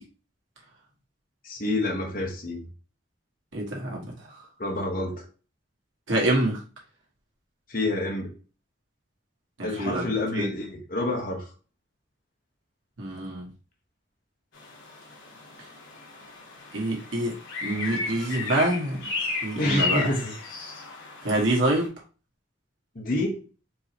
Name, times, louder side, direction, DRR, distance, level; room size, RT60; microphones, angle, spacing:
voice 1, 1.4-2.7 4.6-5.2 7.7-8.3 9.6-11.5 19.6-20.3 22.9-23.4, left 2 dB, 45° left, 1 dB, 1.1 m, -28 dB
voice 2, 3.5-4.3 6.1-6.6 9.6-10.0 10.3-10.5 13.0-13.5 16.7-17.3 17.6-19.1 19.4-20.1 21.2-21.9, right 1 dB, 90° right, -1 dB, 1.5 m, -26 dB
sound 1, 14.5-21.9, left 3 dB, 85° left, 1.3 m, -34 dB
4.7 x 3.1 x 2.9 m, 0.35 s
head